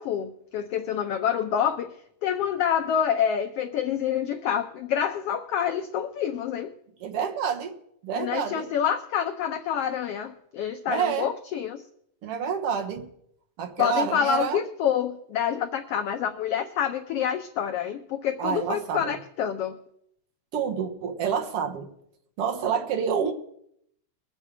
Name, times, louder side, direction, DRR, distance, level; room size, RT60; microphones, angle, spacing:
voice 1, 0.0-1.9 2.2-6.7 8.2-11.8 13.8-19.8, left 9 dB, 85° left, 7 dB, 1.3 m, -27 dB
voice 2, 7.0-7.7 8.0-8.7 10.9-11.3 12.2-13.1 13.6-14.6 18.4-19.1 20.5-21.9 22.4-23.3, right 7 dB, 60° right, 5 dB, 1.9 m, -28 dB
21.5 x 7.5 x 4.9 m, 0.73 s
omnidirectional pair, 3.4 m